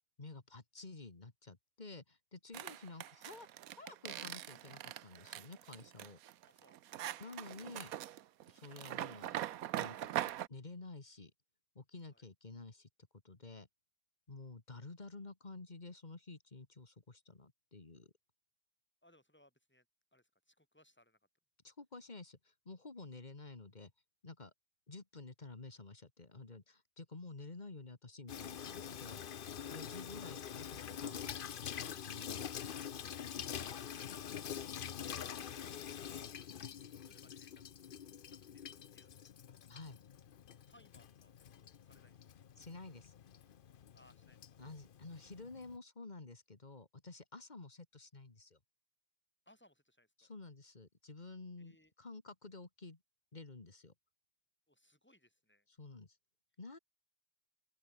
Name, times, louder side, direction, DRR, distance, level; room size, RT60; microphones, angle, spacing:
voice 1, 0.2-6.2 7.2-7.9 8.5-9.5 9.8-11.3 11.8-12.9 13.2-13.7 14.3-18.1 21.6-23.9 24.2-24.5 24.9-29.2 29.7-33.1 39.7-40.0 42.6-43.1 44.6-48.6 50.2-53.0 53.3-53.9 55.8-56.2 56.6-56.8, left 3 dB, 25° left, 2.0 m, -51 dB
sound 1, 2.5-10.5, right 12 dB, 65° right, 1.0 m, -42 dB
voice 2, 6.5-7.0 12.0-12.3 19.0-19.8 20.1-21.2 33.4-34.1 36.0-36.3 36.8-37.6 38.3-39.6 40.7-42.3 43.9-44.5 49.5-50.3 51.6-51.9 54.7-55.7, left 1 dB, 5° left, 4.8 m, -68 dB
Water tap faucet / Sink (filling or washing), 28.3-45.8, left 8 dB, 60° left, 0.5 m, -46 dB
open air
omnidirectional pair, 1.8 m